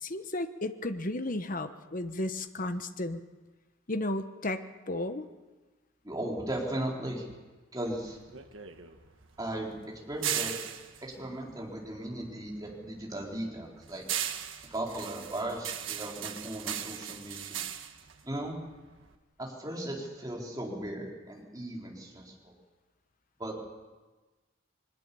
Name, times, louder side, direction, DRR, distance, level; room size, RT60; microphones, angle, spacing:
voice 1, 0.0-3.2 3.9-5.3, left 1 dB, 40° left, 9 dB, 1.1 m, -34 dB
voice 2, 6.0-7.2 7.7-8.2 9.4-10.5 11.0-14.1 14.7-17.6 18.2-18.6 19.4-22.5 23.4-23.6, right 1 dB, 20° right, -2 dB, 4.1 m, -37 dB
sound 1, 7.9-12.4 12.7-19.1, right 10 dB, 70° right, 1.5 m, -38 dB
22.5 x 20.0 x 7.0 m, 1.3 s
head